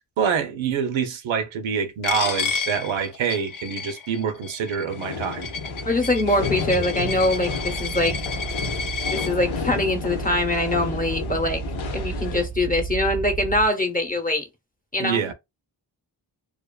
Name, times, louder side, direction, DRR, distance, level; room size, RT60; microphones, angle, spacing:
voice 1, 0.2-5.5 15.0-15.3, right 7 dB, 85° right, 0.6 m, -26 dB
Coin (dropping), 2.0-9.3, left 5 dB, 45° left, 0.5 m, -31 dB
sound 1, 4.9-12.5, left 6 dB, 80° left, 0.8 m, -32 dB
sound 2, 5.4-13.7, right 6 dB, 35° right, 0.4 m, -33 dB
voice 2, 5.8-8.1 9.1-11.6 11.9-14.5 14.9-15.2, left 1 dB, 20° left, 0.8 m, -23 dB
2.5 x 2.3 x 2.3 m
cardioid pair, 55°, 46 cm